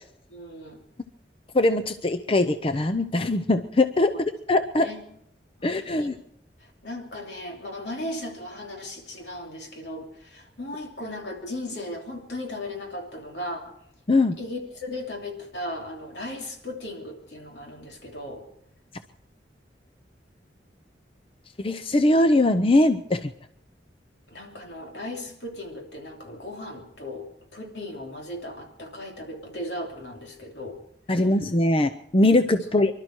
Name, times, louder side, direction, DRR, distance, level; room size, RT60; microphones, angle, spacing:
voice 1, 0.3-0.8 4.1-4.2 4.8-5.0 5.6-6.1 6.6-13.7 14.4-18.4 24.3-27.3 27.5-30.8, left 1 dB, 75° left, 1 dB, 3.0 m, -37 dB
voice 2, 1.5-4.1 4.5-4.9 5.6-6.2 14.1-14.3 21.6-23.3 31.1-32.9, left 2 dB, 30° left, 9 dB, 0.6 m, -21 dB
25.0 x 12.0 x 4.5 m, 0.73 s
head